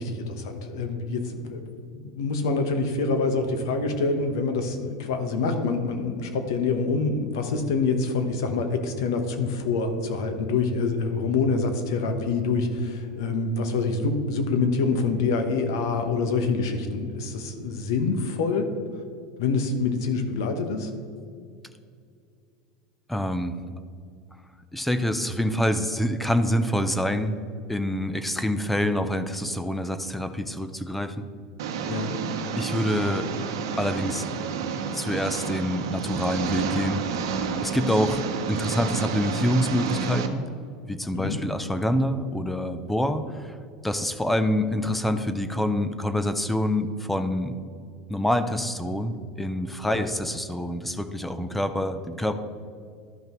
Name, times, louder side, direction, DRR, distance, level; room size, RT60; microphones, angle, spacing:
voice 1, 0.0-18.7 19.4-20.9 31.9-32.2 41.1-41.4 49.9-50.1, left 4 dB, 85° left, 7 dB, 1.1 m, -26 dB
voice 2, 23.1-23.6 24.7-27.4 27.7-31.3 32.6-33.3 33.8-34.3 34.9-37.0 37.6-40.4 40.9-43.6 43.8-47.5 48.1-52.3, left 1 dB, 5° left, 9 dB, 0.5 m, -26 dB
Engine, 31.6-40.3, right 6 dB, 90° right, 0.8 m, -30 dB
12.0 x 5.5 x 3.0 m, 2.3 s
supercardioid pair, 125°, 2 cm